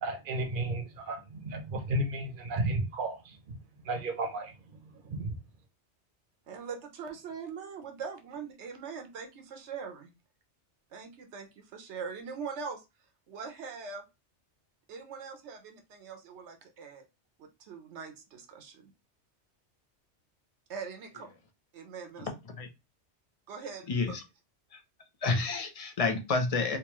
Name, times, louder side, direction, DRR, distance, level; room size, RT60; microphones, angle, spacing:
voice 1, 0.0-3.6 3.8-5.3, right 2 dB, 50° right, 0.9 m, -33 dB
voice 2, 6.5-10.1 10.9-12.8 13.3-14.1 14.9-17.1 17.4-18.9 20.7-21.3 21.7-22.3 23.5-23.9, right 5 dB, 75° right, 1.1 m, -42 dB
voice 3, 23.9-24.2 24.7-24.8 25.2-26.8, left 3 dB, 40° left, 0.6 m, -29 dB
3.5 x 2.8 x 3.0 m
omnidirectional pair, 1.2 m